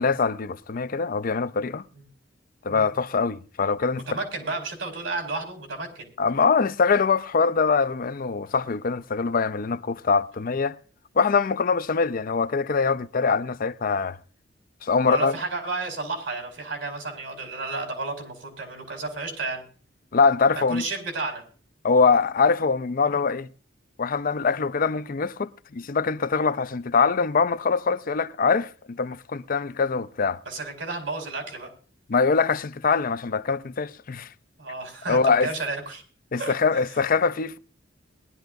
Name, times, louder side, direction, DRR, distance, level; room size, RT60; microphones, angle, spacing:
voice 1, 0.0-1.9 2.6-4.0 6.2-10.8 11.2-14.2 14.8-15.4 20.1-20.8 21.8-23.5 24.0-30.4 32.1-34.3 35.1-35.5 36.3-37.6, left 5 dB, 50° left, 0.5 m, -23 dB
voice 2, 3.9-6.1 15.0-19.6 20.5-21.4 30.4-31.7 34.6-36.0 36.4-37.0, right 3 dB, 85° right, 4.9 m, -32 dB
21.5 x 11.5 x 2.6 m
head